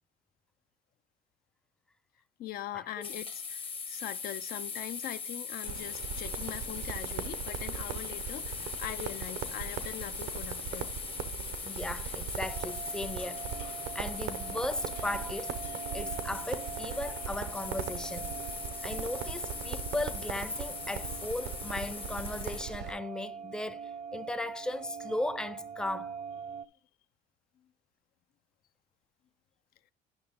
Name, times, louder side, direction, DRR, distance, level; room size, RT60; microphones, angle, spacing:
voice 1, 2.4-10.9, left 12 dB, 60° left, 0.4 m, -42 dB
sound 1, 3.0-22.6, left 5 dB, 30° left, 0.8 m, -40 dB
Crackle, 5.6-22.9, right 8 dB, 85° right, 0.8 m, -40 dB
voice 2, 11.6-15.6 15.9-18.3 18.8-26.2, left 2 dB, 5° left, 0.5 m, -37 dB
sound 2, 12.5-26.7, right 6 dB, 40° right, 0.6 m, -44 dB
9.7 x 5.7 x 3.5 m
cardioid pair, 110°, 17 cm